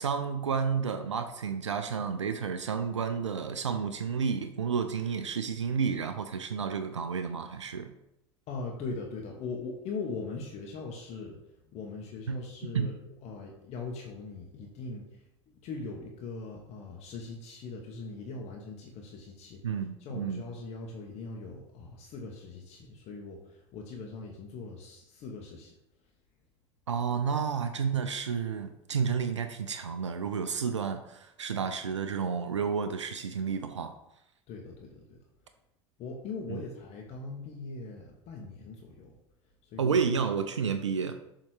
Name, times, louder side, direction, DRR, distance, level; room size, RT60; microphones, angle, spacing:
voice 1, 0.0-7.9 12.3-12.4 12.7-12.9 19.6-20.4 26.9-33.9 36.5-36.6 39.8-41.2, right 6 dB, 85° right, 8 dB, 0.4 m, -31 dB
voice 2, 8.5-25.7 34.5-35.2 36.0-39.2 39.6-40.2, left 4 dB, 45° left, 0 dB, 1.0 m, -41 dB
6.8 x 2.9 x 4.8 m, 0.84 s
figure-of-eight pair, 75°, 15 cm